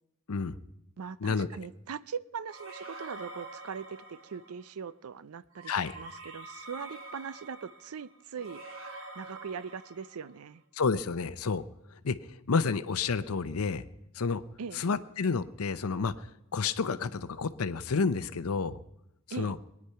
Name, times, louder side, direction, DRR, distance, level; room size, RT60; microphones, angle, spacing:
voice 1, 1.0-8.6 9.2-10.6 14.6-14.8 19.3-19.6, right 6 dB, 85° right, 0.5 m, -41 dB
sound 1, 2.5-4.7 5.5-10.4, right 2 dB, 65° right, 2.3 m, -46 dB
voice 2, 10.7-11.6 12.0-13.8 14.1-14.4 14.7-16.3 16.5-18.8 19.4-19.6, left 5 dB, 85° left, 0.7 m, -30 dB
20.5 x 9.7 x 5.7 m
head